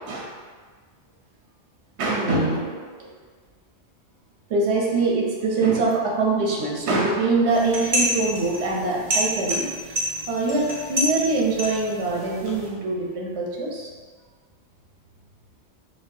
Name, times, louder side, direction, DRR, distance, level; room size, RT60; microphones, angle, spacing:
voice 1, 2.0-3.1 4.5-9.6 10.3-13.9, right 3 dB, 75° right, -2 dB, 1.1 m, -23 dB
sound 1, 7.5-12.7, equal, 35° right, 0.8 m, -28 dB
4.3 x 3.5 x 2.6 m, 1.5 s
omnidirectional pair, 1.2 m